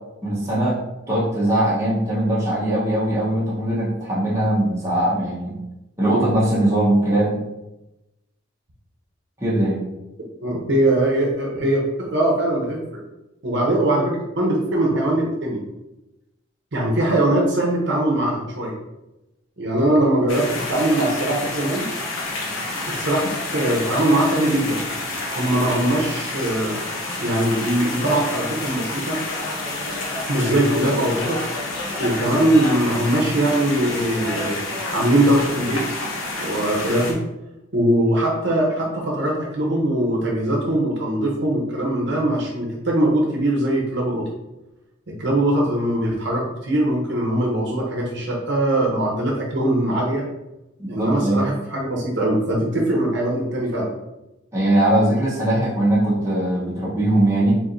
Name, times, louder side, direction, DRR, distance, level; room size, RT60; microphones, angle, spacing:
voice 1, 0.2-0.8 1.1-5.6 6.0-7.4 9.4-9.8 50.8-51.4 54.5-57.6, right 1 dB, 15° right, -8 dB, 1.1 m, -20 dB
voice 2, 10.4-13.0 13.4-15.6 16.7-18.7 19.6-21.9 22.9-24.8 25.3-29.2 30.3-31.4 32.0-34.6 34.9-35.9 36.4-37.2 37.7-44.2 45.2-50.2 50.9-53.9, right 1 dB, 55° right, -2 dB, 0.9 m, -21 dB
sound 1, 20.3-37.1, left 2 dB, 85° left, 1.1 m, -29 dB
4.7 x 3.6 x 2.6 m, 0.96 s
head